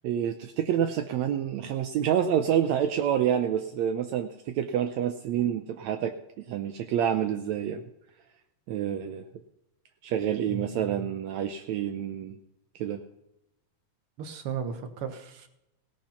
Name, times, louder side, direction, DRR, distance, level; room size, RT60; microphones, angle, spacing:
voice 1, 0.0-7.8 8.7-9.2 10.0-12.4 12.8-13.0, right 9 dB, 75° right, 7 dB, 1.9 m, -28 dB
voice 2, 10.5-11.1 14.2-15.5, right 6 dB, 55° right, 8 dB, 1.8 m, -36 dB
17.5 x 8.8 x 5.7 m, 0.87 s
omnidirectional pair, 3.5 m